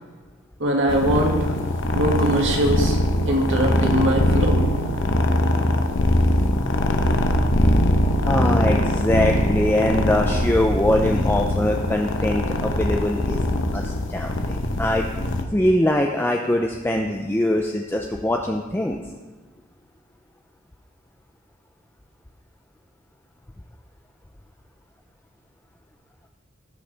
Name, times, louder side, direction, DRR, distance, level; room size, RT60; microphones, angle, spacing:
voice 1, 0.6-1.4 1.9-3.0 3.3-4.7, right 1 dB, 65° right, 0 dB, 2.0 m, -21 dB
sound 1, 0.9-15.4, left 1 dB, 65° left, 0.9 m, -22 dB
voice 2, 8.2-13.4 13.7-15.1 15.5-19.0, left 1 dB, 10° left, 2 dB, 0.5 m, -22 dB
18.5 x 6.6 x 3.4 m, 1.3 s
head